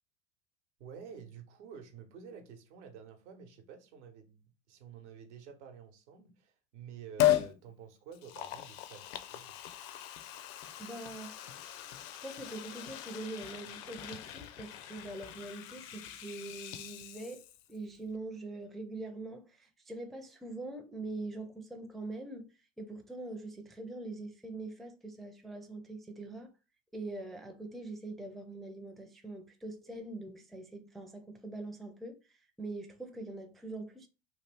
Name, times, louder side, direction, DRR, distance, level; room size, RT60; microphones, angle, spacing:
voice 1, 0.8-9.5, right 7 dB, 75° right, 0.9 m, -50 dB
Liquid, 7.2-7.5 8.1-17.8 18.1-18.2, left 13 dB, 60° left, 0.5 m, -36 dB
voice 2, 10.8-11.6 12.2-26.5 26.9-34.1, right 2 dB, ahead, 0.4 m, -43 dB
2.9 x 2.3 x 3.3 m
hypercardioid pair, 90°, 35 cm